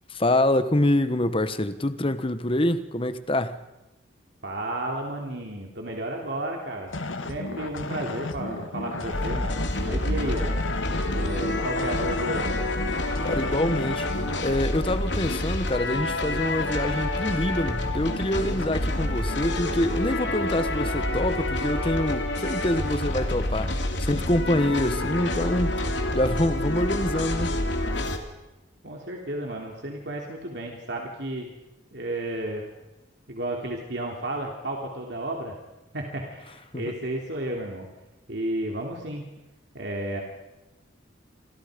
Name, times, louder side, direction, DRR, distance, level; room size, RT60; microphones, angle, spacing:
voice 1, 0.1-3.6 13.2-14.1 14.4-25.8 26.1-27.5 36.7-36.9, left 1 dB, 30° left, 1.2 m, -26 dB
voice 2, 4.4-6.9 7.3-10.6 11.1-12.5 28.8-31.5 31.9-32.6 33.3-35.6 35.9-37.9 38.3-39.2 39.7-40.2, right 1 dB, 60° right, 3.4 m, -32 dB
sound 1, 6.9-14.5, left 2 dB, 85° left, 1.8 m, -34 dB
sound 2, 9.1-28.2, left 1 dB, 65° left, 2.9 m, -28 dB
28.0 x 27.0 x 5.2 m
head